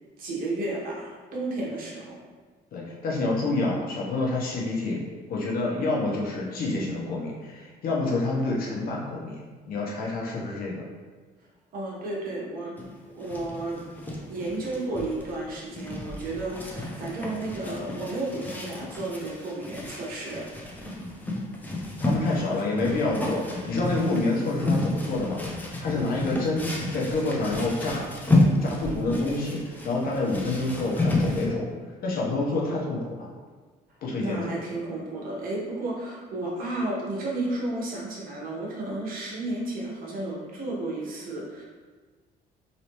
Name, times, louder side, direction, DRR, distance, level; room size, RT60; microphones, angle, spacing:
voice 1, 0.2-2.2 11.7-12.7 13.1-13.8 14.3-20.9 22.2-22.9 25.9-26.0 34.2-41.6, right 2 dB, 60° right, -4 dB, 1.0 m, -33 dB
voice 2, 2.7-10.9 22.0-28.1 28.6-31.7 32.0-33.3 34.0-34.5, left 2 dB, 60° left, -3 dB, 0.8 m, -28 dB
sound 1, 12.8-31.5, left 1 dB, 10° left, 0.5 m, -30 dB
3.2 x 2.7 x 3.0 m, 1.5 s
cardioid pair, 110°, 17 cm